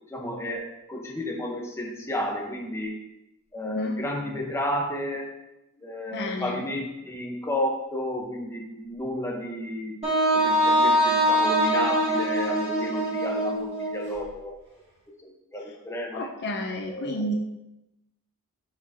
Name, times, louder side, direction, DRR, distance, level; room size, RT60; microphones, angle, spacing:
voice 1, 0.1-3.0 3.5-5.3 5.8-10.0 10.3-14.6 15.2-16.3 16.9-17.3, left 1 dB, 10° left, 0 dB, 1.1 m, -32 dB
voice 2, 3.6-4.0 6.1-6.6 16.1-17.3, left 1 dB, 50° left, 2 dB, 0.6 m, -31 dB
Wind instrument woodwind instrument, 10.0-14.1, equal, 30° right, 2.6 m, -23 dB
7.4 x 6.0 x 2.9 m, 0.91 s
head